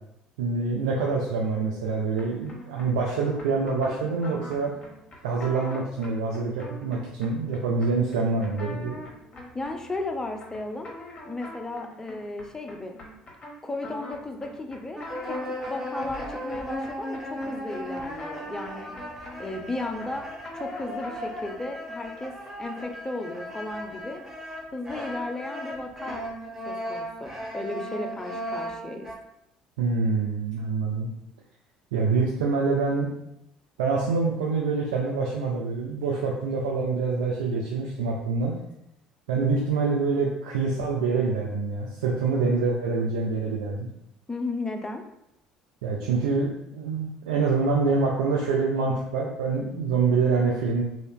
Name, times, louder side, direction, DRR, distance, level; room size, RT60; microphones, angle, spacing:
voice 1, 0.4-4.7 5.2-9.0 29.8-31.1 31.9-33.1 33.8-38.6 39.3-43.9 45.8-50.8, right 4 dB, 85° right, -2 dB, 0.5 m, -26 dB
sound 1, 2.2-21.4, left 1 dB, 35° left, 1.2 m, -45 dB
voice 2, 9.5-10.9 11.2-13.0 13.6-18.9 19.4-20.3 20.5-22.3 22.6-24.2 24.7-26.2 26.7-29.1 44.3-45.1, left 2 dB, 20° left, 4 dB, 0.6 m, -35 dB
sound 2, 15.0-29.1, equal, 15° right, 1.0 m, -36 dB
2.8 x 2.7 x 3.3 m, 0.81 s
hypercardioid pair, 65°, 3 cm